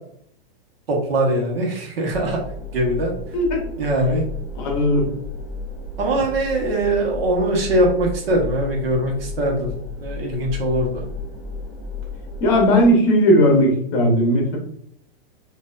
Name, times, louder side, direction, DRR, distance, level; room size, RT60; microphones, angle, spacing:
voice 1, 0.9-2.4 2.7-3.1 3.8-4.2 6.0-9.7 10.0-11.0, right 1 dB, 75° right, 0 dB, 1.2 m, -21 dB
sound 1, 2.1-12.9, left 3 dB, ahead, 0.3 m, -33 dB
voice 2, 4.5-5.1 12.4-14.6, equal, 25° left, 0 dB, 0.8 m, -17 dB
4.3 x 2.6 x 2.5 m, 0.69 s
supercardioid pair, 170°, 29 cm